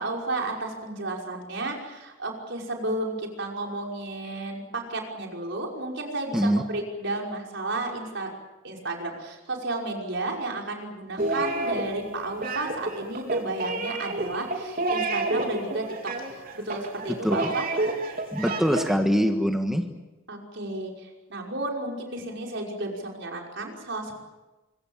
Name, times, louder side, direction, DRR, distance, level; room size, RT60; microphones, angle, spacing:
voice 1, 0.0-8.3 8.6-17.7 20.3-24.1, right 2 dB, 60° right, 0 dB, 5.6 m, -32 dB
sound 1, 11.2-19.0, right 2 dB, 45° right, 3.9 m, -29 dB
voice 2, 18.3-19.8, equal, ahead, 4 dB, 1.5 m, -23 dB
26.0 x 24.0 x 7.4 m, 1.1 s
head